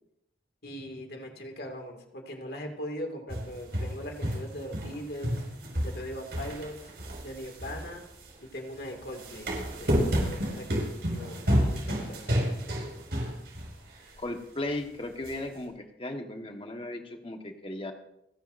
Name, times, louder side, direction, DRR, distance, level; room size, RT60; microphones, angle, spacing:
voice 1, 0.6-5.4 5.8-6.9 7.2-8.0 8.4-9.5 9.8-12.5, equal, 60° left, 3 dB, 2.2 m, -40 dB
sound 1, 3.3-5.0 5.2-8.3 9.0-13.7 14.1-14.2 15.2-15.3, equal, 65° right, 5.1 m, -30 dB
voice 2, 14.2-17.9, left 1 dB, 30° left, 4 dB, 1.4 m, -36 dB
29.5 x 10.5 x 2.6 m, 0.82 s
head